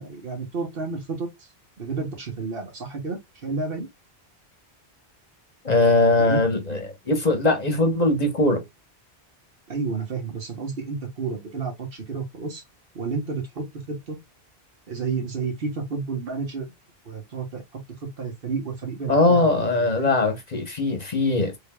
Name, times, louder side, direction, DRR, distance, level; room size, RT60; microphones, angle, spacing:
voice 1, 0.0-1.5 1.8-3.9 6.2-6.4 9.7-12.6 12.9-14.2 14.9-16.7 17.0-19.5 19.8-20.1, right 4 dB, 60° right, 1.4 m, -31 dB
voice 2, 5.6-8.6 19.1-21.6, left 2 dB, 40° left, 1.0 m, -21 dB
3.8 x 3.4 x 2.2 m
omnidirectional pair, 1.1 m